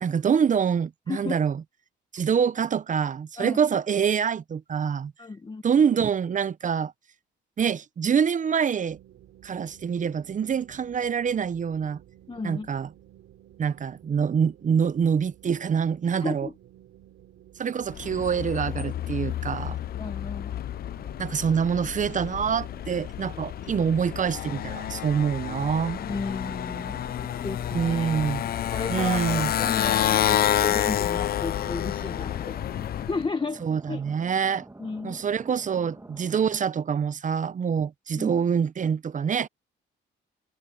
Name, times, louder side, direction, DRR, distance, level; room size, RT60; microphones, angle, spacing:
voice 1, 0.0-1.6 2.1-5.1 5.6-6.9 7.6-9.0 9.4-12.0 12.4-12.9 13.6-16.5 17.6-19.8 21.2-26.0 27.7-28.4 28.9-29.5 33.6-34.7 35.0-39.5, right 7 dB, 40° right, 0.7 m, -25 dB
voice 2, 5.2-5.6 12.3-12.7 16.2-16.5 20.0-20.5 26.0-26.9 27.4-32.6 33.1-34.0 34.8-35.2 38.1-38.3, left 4 dB, 25° left, 1.5 m, -34 dB
sound 1, 8.9-27.0, right 12 dB, 80° right, 3.4 m, -53 dB
Motorcycle, 17.9-33.3, left 11 dB, 50° left, 0.4 m, -29 dB
sound 2, 26.0-36.5, right 2 dB, 15° right, 2.0 m, -47 dB
cardioid pair, 90°, 20 cm